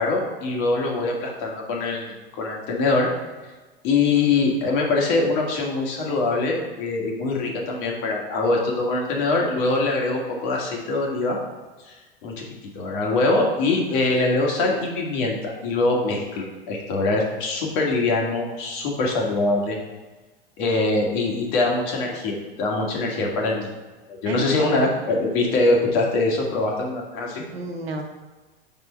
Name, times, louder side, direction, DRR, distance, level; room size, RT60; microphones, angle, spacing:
voice 1, 0.0-3.1 3.8-11.4 11.9-12.0 12.2-12.4 12.8-19.8 20.6-23.7 24.1-27.4, left 3 dB, 55° left, -1 dB, 1.7 m, -23 dB
voice 2, 24.3-24.9 27.5-28.0, right 2 dB, 90° right, 3 dB, 1.1 m, -31 dB
4.9 x 4.4 x 5.6 m, 1.3 s
hypercardioid pair, 95°, 30 cm